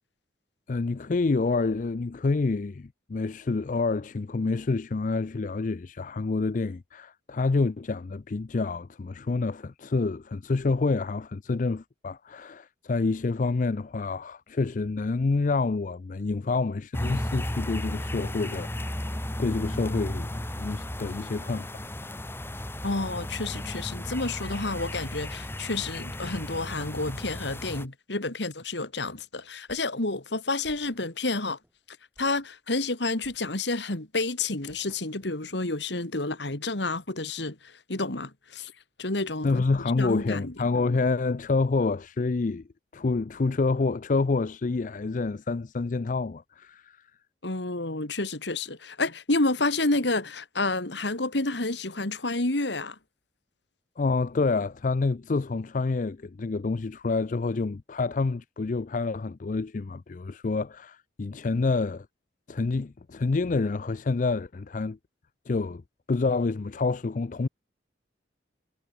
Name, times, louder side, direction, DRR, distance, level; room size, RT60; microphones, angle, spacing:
voice 1, 0.7-18.7 19.4-21.8 39.4-42.6 42.9-47.1 54.0-62.1 62.5-65.0 65.5-65.8 66.1-67.5, left 3 dB, 45° left, 0.4 m, -28 dB
sound 1, 16.9-27.9, left 1 dB, 15° left, 1.4 m, -34 dB
voice 2, 22.8-31.6 31.9-38.7 39.0-39.5 40.0-40.5 47.4-53.0, left 2 dB, 70° left, 2.6 m, -30 dB
sound 2, 29.7-30.1 30.6-31.2 31.6-31.8 32.2-32.5 33.2-33.9 34.7-35.4, equal, 10° right, 6.6 m, -58 dB
head